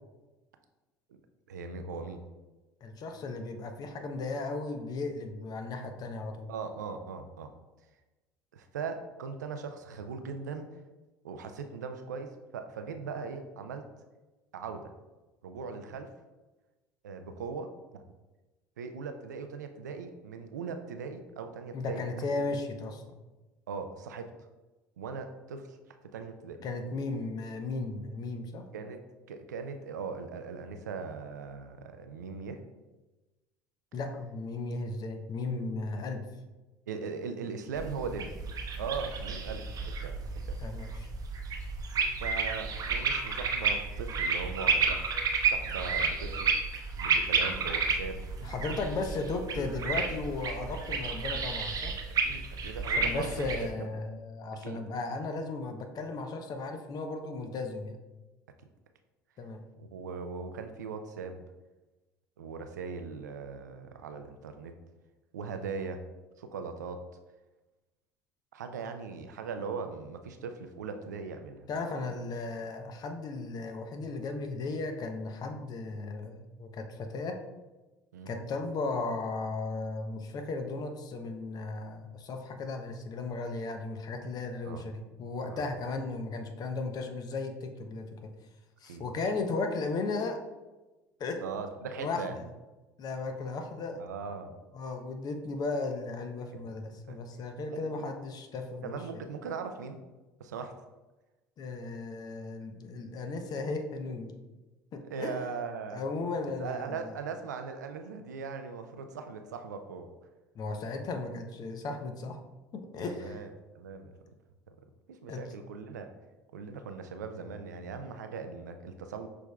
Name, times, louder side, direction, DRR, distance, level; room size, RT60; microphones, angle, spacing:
voice 1, 1.5-2.2 6.5-7.5 8.5-10.7 11.2-13.9 14.5-14.9 15.4-16.1 17.0-18.0 18.8-22.1 22.4-22.5 23.7-24.3 25.0-25.8 26.1-26.6 28.7-29.0 29.3-32.6 36.9-38.3 38.8-40.2 40.5-40.6 42.2-45.0 45.5-46.5 47.0-48.2 52.2-53.5 53.8-53.9 54.6-54.8 59.8-61.4 62.4-64.7 65.3-66.0 66.4-67.0 68.5-71.7 78.1-78.4 84.7-84.8 85.5-85.7 88.9-89.0 91.4-92.4 94.0-94.6 97.1-97.2 97.7-98.1 98.8-100.0 100.4-100.7 105.1-106.0 106.6-110.1 113.0-113.5 113.7-114.1 115.1-116.1 116.5-119.3, right 5 dB, 85° right, 7 dB, 0.4 m, -39 dB
voice 2, 2.8-6.5 21.7-23.2 26.6-28.7 33.9-36.2 40.6-41.1 48.4-51.9 53.0-58.0 59.4-59.6 71.7-77.4 78.3-88.3 88.8-90.4 91.2-91.4 92.0-92.5 93.0-94.0 94.7-99.2 101.6-104.3 104.9-105.3 105.9-107.2 110.5-112.4 112.7-113.4 115.3-115.4, left 3 dB, 45° left, 6 dB, 0.6 m, -35 dB
sound 1, 37.8-53.7, right 5 dB, 40° right, 0.7 m, -31 dB
6.1 x 3.4 x 2.3 m, 1.1 s
hypercardioid pair, 65°, 9 cm